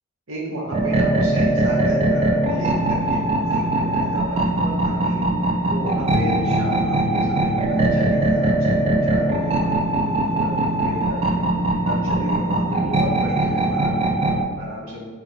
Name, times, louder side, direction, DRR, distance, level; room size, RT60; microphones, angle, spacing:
voice 1, 0.3-5.3 5.7-11.4 11.8-15.0, equal, 70° right, -3 dB, 0.8 m, -33 dB
sound 1, 0.7-14.4, right 2 dB, 30° right, 0.3 m, -21 dB
Bass guitar, 6.1-12.4, left 5 dB, 70° left, 0.4 m, -34 dB
2.9 x 2.2 x 3.7 m, 1.5 s
head